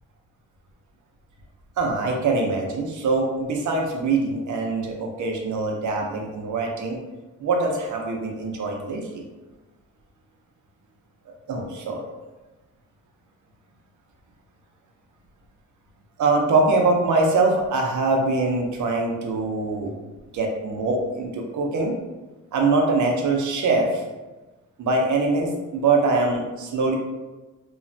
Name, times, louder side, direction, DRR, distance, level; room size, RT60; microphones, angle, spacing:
voice 1, 1.8-7.0 7.4-9.2 11.5-12.1 16.2-19.9 20.3-21.9 22.5-24.0 24.8-26.9, right 3 dB, 75° right, 1 dB, 0.6 m, -23 dB
3.0 x 2.1 x 2.6 m, 1.2 s
wide cardioid pair, 145°, 30 cm